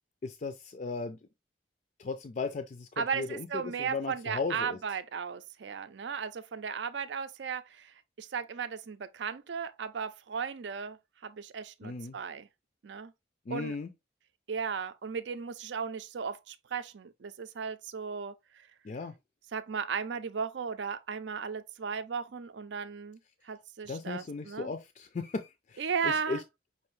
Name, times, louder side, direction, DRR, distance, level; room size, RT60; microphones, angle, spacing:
voice 1, 0.2-1.2 2.0-3.5 3.8-4.8 11.8-12.2 13.5-13.9 18.8-19.1 23.9-26.4, left 4 dB, 45° left, 0.4 m, -36 dB
voice 2, 3.0-12.5 12.8-13.1 13.5-13.8 14.5-18.7 19.5-23.2 23.4-24.7 25.8-26.4, right 6 dB, 80° right, 0.5 m, -36 dB
5.5 x 2.6 x 3.1 m
head